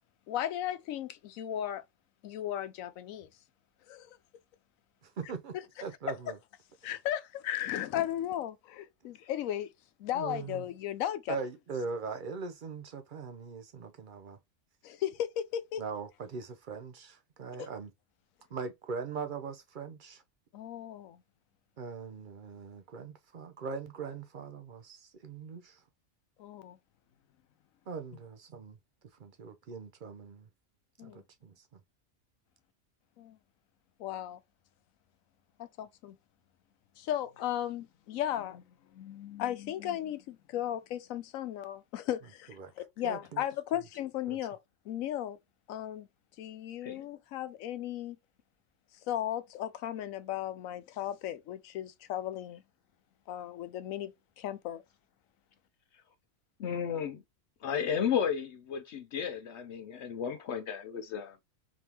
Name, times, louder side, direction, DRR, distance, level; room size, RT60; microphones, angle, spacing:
voice 1, 0.3-1.8 2.2-3.3 3.9-4.2 6.8-9.7 10.0-11.4 14.8-15.8 17.6-17.7 20.5-21.2 26.4-26.8 31.0-31.2 33.2-33.4 34.0-34.4 35.6-36.2 37.0-44.6 44.9-45.4 45.7-46.1 46.4-48.2 49.1-52.6 53.3-54.8, left 11 dB, 90° left, 1.0 m, -36 dB
voice 2, 5.0-6.4 10.1-10.7 11.3-14.4 15.8-17.9 18.5-20.2 21.8-25.8 27.9-28.8 29.1-30.5 31.0-31.8 42.5-42.7 43.0-43.4 44.3-44.4, right 5 dB, 50° right, 0.6 m, -41 dB
voice 3, 56.6-57.2 57.6-61.4, left 7 dB, 65° left, 0.8 m, -33 dB
4.1 x 3.5 x 2.8 m
omnidirectional pair, 1.4 m